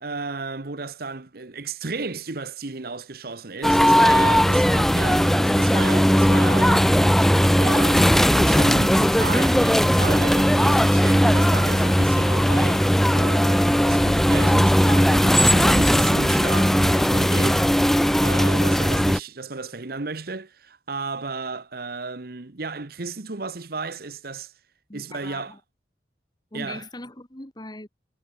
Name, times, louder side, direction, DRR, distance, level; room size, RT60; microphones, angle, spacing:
voice 1, 0.0-6.9 7.6-17.9 18.2-24.5 24.9-25.6 26.5-26.8, right 3 dB, 55° right, 1.1 m, -34 dB
sound 1, 3.6-19.2, equal, ahead, 0.6 m, -18 dB
Bird vocalization bird call bird song, 9.4-15.8, left 5 dB, 70° left, 6.7 m, -47 dB
voice 2, 24.9-25.6 26.5-27.9, left 1 dB, 25° left, 2.2 m, -39 dB
head